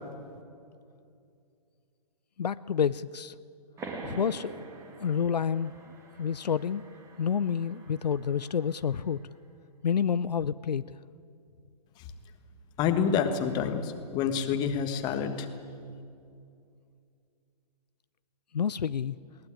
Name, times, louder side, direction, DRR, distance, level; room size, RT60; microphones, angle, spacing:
voice 1, 2.4-3.3 4.0-4.6 5.0-5.7 6.2-6.8 7.2-9.2 9.8-10.8 18.5-19.1, left 7 dB, 80° left, 16 dB, 0.6 m, -28 dB
sound 1, 3.8-9.0, right 3 dB, 15° right, 1.9 m, -45 dB
voice 2, 12.8-15.5, left 7 dB, 20° left, 8 dB, 1.4 m, -28 dB
21.0 x 19.0 x 8.7 m, 2.4 s
hypercardioid pair, 145°, 21 cm